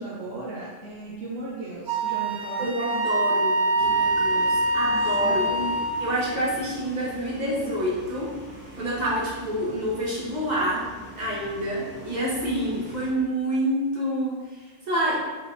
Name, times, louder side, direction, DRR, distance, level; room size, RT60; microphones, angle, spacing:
voice 1, 0.0-2.7 5.2-5.7, right 2 dB, 75° right, -6 dB, 1.0 m, -35 dB
Wind instrument woodwind instrument, 1.9-6.1, right 2 dB, 60° right, 0.6 m, -24 dB
voice 2, 2.6-5.4 6.0-8.3 8.8-10.9 11.2-15.2, right 1 dB, 40° right, -5 dB, 1.0 m, -27 dB
sound 1, 3.8-13.1, right 1 dB, 10° right, 1.2 m, -43 dB
4.8 x 3.2 x 2.6 m, 1.3 s
omnidirectional pair, 1.3 m